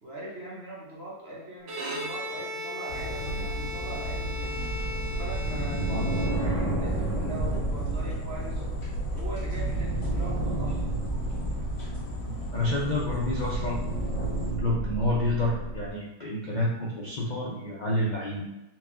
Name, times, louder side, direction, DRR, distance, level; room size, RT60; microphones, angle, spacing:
voice 1, 0.0-4.6 5.0-8.8 9.1-10.9, right 1 dB, 40° right, -5 dB, 1.1 m, -41 dB
Bowed string instrument, 1.6-6.9, left 1 dB, 80° right, 1.6 m, -37 dB
sound 1, 2.9-14.5, left 1 dB, 40° left, 2.0 m, -35 dB
sound 2, 4.6-15.9, right 2 dB, 10° left, 0.8 m, -31 dB
voice 2, 12.2-13.9 14.6-18.4, left 1 dB, 70° left, -5 dB, 0.4 m, -29 dB
4.6 x 2.8 x 3.6 m, 0.98 s
omnidirectional pair, 2.0 m